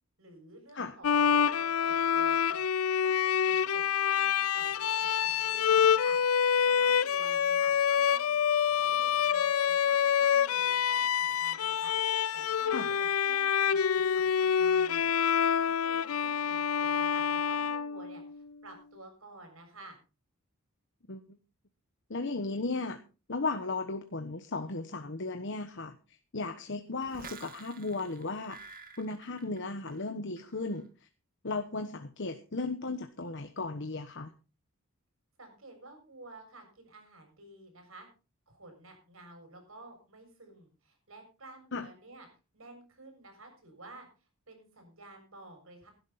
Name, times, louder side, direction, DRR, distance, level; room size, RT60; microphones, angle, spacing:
voice 1, 0.2-2.6 3.0-8.3 8.7-20.0 35.4-38.1 38.5-42.3 42.5-44.1 44.5-45.9, right 2 dB, 75° right, 4 dB, 7.0 m, -52 dB
Bowed string instrument, 1.0-18.5, left 8 dB, 90° left, 0.6 m, -27 dB
voice 2, 22.1-23.0 23.3-28.6 29.0-30.9 31.4-34.3 41.7-41.9, left 3 dB, 60° left, 7 dB, 1.2 m, -35 dB
sound 1, 27.0-30.1 30.4-30.8, right 5 dB, 45° right, 1.7 m, -50 dB
17.0 x 12.0 x 4.2 m, 0.33 s
head